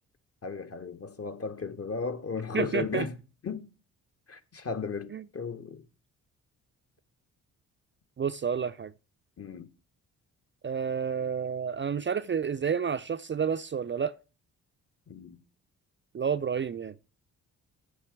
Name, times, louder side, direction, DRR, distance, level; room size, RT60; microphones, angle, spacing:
voice 1, 0.4-3.1 3.4-3.7 4.3-5.8 9.4-9.7 15.1-15.4, left 5 dB, 40° left, 1.5 m, -35 dB
voice 2, 2.5-3.1 5.1-5.2 8.2-8.9 10.6-14.1 16.1-16.9, right 7 dB, 30° right, 0.5 m, -30 dB
10.0 x 6.6 x 4.7 m
hypercardioid pair, 45°, 38 cm